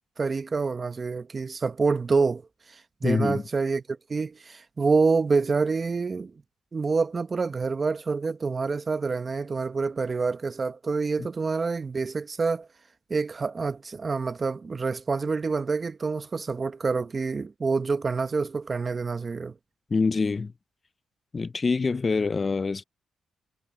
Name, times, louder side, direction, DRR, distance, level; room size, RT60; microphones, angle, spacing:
voice 1, 0.2-2.4 2.7-6.3 6.7-12.7 13.1-19.5, right 4 dB, 35° right, 1.1 m, -27 dB
voice 2, 3.0-3.4 11.2-11.3 19.9-20.5 21.3-22.8, left 4 dB, 35° left, 0.4 m, -25 dB
cardioid pair, 85°, 0 cm